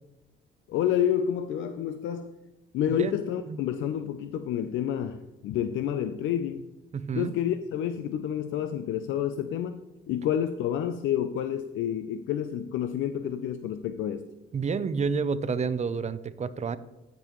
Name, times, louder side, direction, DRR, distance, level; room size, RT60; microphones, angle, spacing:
voice 1, 0.7-2.3 2.7-6.6 7.2-9.8 10.1-14.3, left 10 dB, 80° left, 9 dB, 0.5 m, -29 dB
voice 2, 6.9-7.3 14.5-16.8, right 5 dB, 35° right, 14 dB, 0.6 m, -29 dB
14.5 x 5.3 x 3.0 m, 1.0 s
cardioid pair, 90°, 20 cm